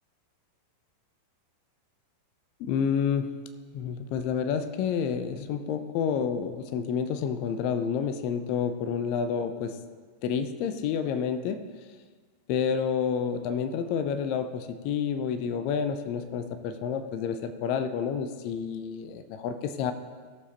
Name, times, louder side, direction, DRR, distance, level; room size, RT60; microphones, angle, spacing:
voice 1, 2.6-3.3 3.7-9.8 10.2-11.6 12.5-19.9, left 7 dB, 45° left, 9 dB, 0.7 m, -29 dB
17.0 x 7.2 x 2.9 m, 1.5 s
figure-of-eight pair, 90°, 0 cm